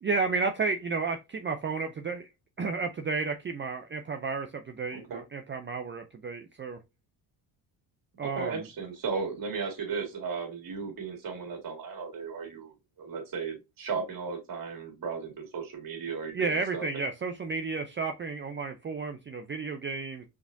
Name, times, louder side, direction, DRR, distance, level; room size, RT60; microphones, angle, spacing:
voice 1, 0.0-2.3 2.6-6.8 8.2-8.5 16.3-20.2, right 4 dB, 25° right, 0.5 m, -32 dB
voice 2, 4.9-5.2 8.2-17.0, right 5 dB, 45° right, 2.1 m, -35 dB
4.8 x 3.5 x 2.6 m
cardioid pair, 85°, 45 cm